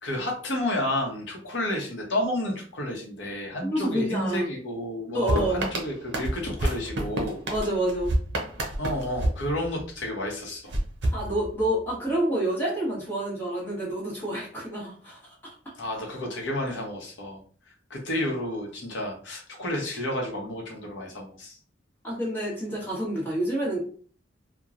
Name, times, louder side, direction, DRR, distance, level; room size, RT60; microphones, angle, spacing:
voice 1, 0.0-7.4 8.8-10.7 15.8-17.4 17.7-21.6, left 1 dB, 80° left, 0 dB, 0.9 m, -31 dB
voice 2, 3.6-4.4 5.1-5.6 7.5-8.1 11.1-15.2 22.0-23.9, right 1 dB, 10° left, -6 dB, 1.2 m, -28 dB
sound 1, 5.3-10.1 10.7-11.9, right 1 dB, 65° right, 0.6 m, -30 dB
2.9 x 2.2 x 2.4 m, 0.43 s
head